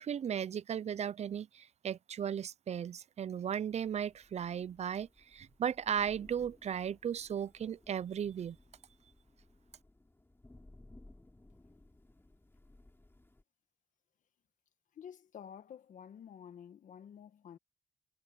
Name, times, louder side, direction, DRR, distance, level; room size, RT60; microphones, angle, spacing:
voice 1, 0.0-8.6, right 8 dB, 55° right, 0.5 m, -36 dB
Thunder / Rain, 3.7-13.4, left 2 dB, 15° left, 3.3 m, -61 dB
voice 2, 14.9-17.6, left 8 dB, 70° left, 1.8 m, -50 dB
supercardioid pair, 55°, 13 cm